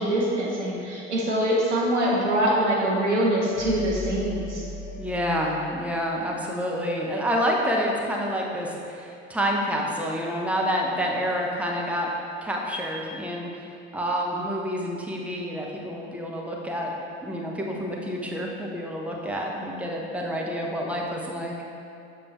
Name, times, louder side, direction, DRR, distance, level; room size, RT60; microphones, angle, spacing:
voice 1, 0.0-4.6, right 1 dB, 80° right, -5 dB, 1.4 m, -24 dB
sound 1, 3.5-6.6, left 3 dB, 35° left, 0.9 m, -37 dB
voice 2, 5.0-12.1 12.4-13.6 13.9-16.9 17.2-21.5, equal, 5° right, -2 dB, 0.9 m, -28 dB
7.8 x 6.0 x 3.1 m, 2.6 s
figure-of-eight pair, 70°, 34 cm